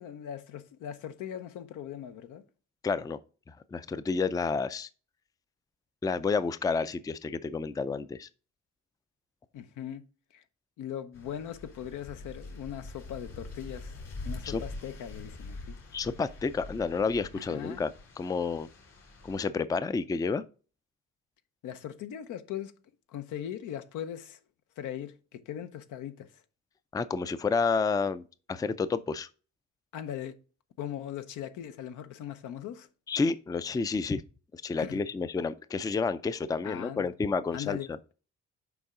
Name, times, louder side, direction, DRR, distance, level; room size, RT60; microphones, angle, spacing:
voice 1, 0.0-2.4 9.5-10.0 10.3-10.4 10.8-15.8 17.3-17.8 21.6-22.7 23.1-24.4 24.8-26.3 29.9-30.4 30.8-32.9 34.8-35.0 36.6-37.1 37.5-37.9, left 10 dB, 80° left, 0.8 m, -39 dB
voice 2, 2.8-3.2 3.5-4.9 6.0-8.3 14.4-14.6 15.9-17.9 18.2-18.7 19.2-20.4 26.9-29.3 33.1-34.2 34.5-38.0, left 4 dB, 10° left, 0.4 m, -30 dB
sound 1, 11.1-19.4, left 2 dB, 55° left, 2.9 m, -44 dB
7.1 x 4.6 x 3.7 m
cardioid pair, 90°, 30 cm